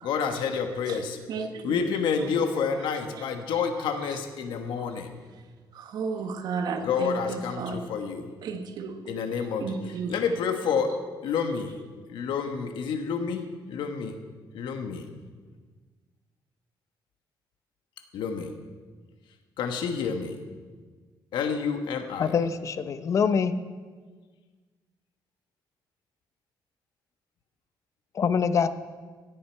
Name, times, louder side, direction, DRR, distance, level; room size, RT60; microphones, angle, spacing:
voice 1, 0.0-1.2 1.6-5.1 6.8-8.3 9.1-9.7 10.1-10.9 11.2-11.7 12.1-13.4 13.7-14.1 14.5-15.1 18.1-18.5 19.6-20.4 21.3-22.3, left 6 dB, 80° left, 6 dB, 1.3 m, -29 dB
voice 2, 1.3-1.8 2.2-2.3 3.1-3.6 4.8-4.9 5.7-7.8 8.4-10.1 11.4-11.6, right 5 dB, 60° right, 7 dB, 1.1 m, -34 dB
voice 3, 22.2-23.5 28.1-28.7, left 6 dB, 40° left, 12 dB, 0.6 m, -24 dB
17.0 x 9.3 x 4.6 m, 1.4 s
cardioid pair, 155°, 8 cm